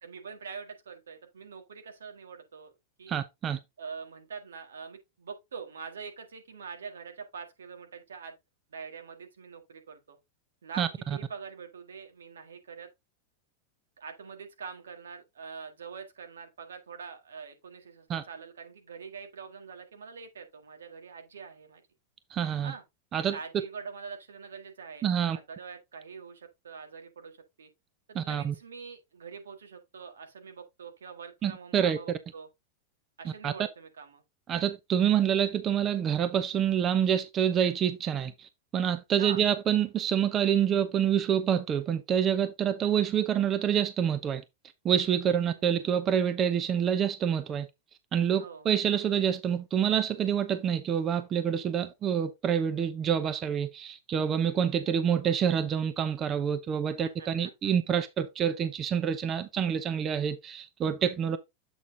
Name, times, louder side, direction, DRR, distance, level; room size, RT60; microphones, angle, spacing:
voice 1, 0.0-2.7 3.0-3.2 3.8-8.4 8.7-10.2 10.6-12.9 14.0-21.8 22.6-22.8 23.3-27.7 28.1-32.5 33.2-34.2 39.2-39.5 45.2-45.9 48.3-48.7 57.0-57.7, right 5 dB, 85° right, 1.7 m, -44 dB
voice 2, 3.1-3.6 10.8-10.9 18.1-18.2 22.3-22.7 23.1-23.4 25.0-25.4 28.1-28.5 31.4-32.0 33.4-33.5 34.5-44.4 44.8-47.7 48.1-61.4, right 8 dB, 30° right, 0.8 m, -27 dB
8.0 x 4.1 x 3.7 m
hypercardioid pair, 110°, 0 cm